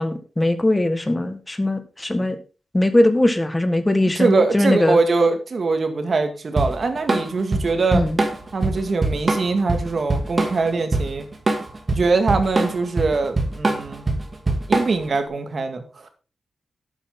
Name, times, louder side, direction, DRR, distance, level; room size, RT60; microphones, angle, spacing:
voice 1, 0.0-2.4 2.7-5.0 7.9-8.2, left 1 dB, 15° left, 9 dB, 1.5 m, -20 dB
voice 2, 4.2-8.0 8.5-11.3 11.9-14.1 14.7-16.1, right 3 dB, 50° right, 6 dB, 2.0 m, -22 dB
Drum kit / Drum, 6.6-15.2, right 2 dB, 30° right, 2.2 m, -23 dB
11.5 x 8.6 x 3.8 m, 0.33 s
wide cardioid pair, 120°, 0 cm